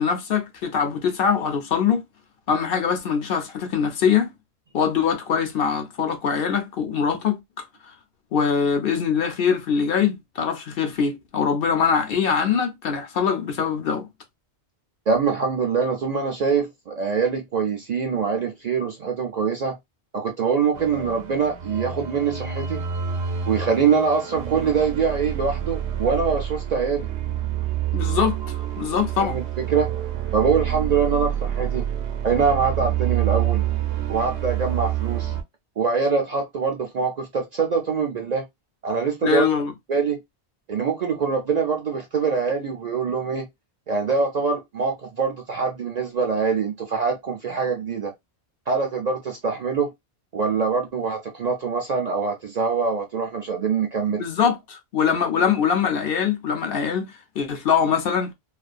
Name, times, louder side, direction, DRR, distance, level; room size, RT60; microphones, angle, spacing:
voice 1, 0.0-2.0 2.5-4.3 4.7-7.4 7.9-8.0 8.3-14.1 27.9-29.4 39.2-39.7 54.2-58.3, left 7 dB, 65° left, 0.7 m, -23 dB
voice 2, 15.1-19.8 20.1-22.8 23.5-27.1 29.2-29.4 29.7-29.9 30.3-31.9 32.2-33.6 34.1-35.3 35.8-38.4 38.8-39.5 39.9-40.2 40.7-43.5 43.9-48.1 48.7-49.9 50.3-54.2, right 5 dB, 55° right, 0.5 m, -24 dB
sound 1, 20.7-35.4, right 10 dB, 85° right, 0.9 m, -27 dB
2.4 x 2.3 x 2.4 m
omnidirectional pair, 1.1 m